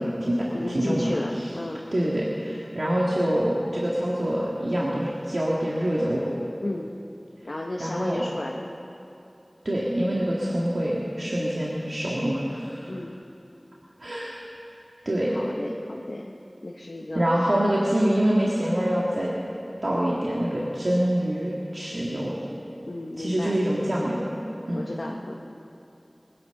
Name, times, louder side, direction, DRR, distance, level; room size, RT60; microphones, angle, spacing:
voice 1, 0.0-0.5 0.7-1.2 1.9-6.2 7.8-8.2 9.7-12.9 14.0-14.4 15.1-15.4 17.2-19.3 19.8-22.4 23.2-24.3 24.7-24.8, equal, 80° right, -6 dB, 1.8 m, -25 dB
voice 2, 0.5-1.9 6.6-7.0 7.4-8.7 12.9-13.2 15.3-16.4 16.6-17.6 22.8-23.6 24.7-25.3, left 1 dB, 70° left, -1 dB, 1.0 m, -34 dB
21.0 x 10.5 x 6.5 m, 2.8 s
wide cardioid pair, 45°, 0 cm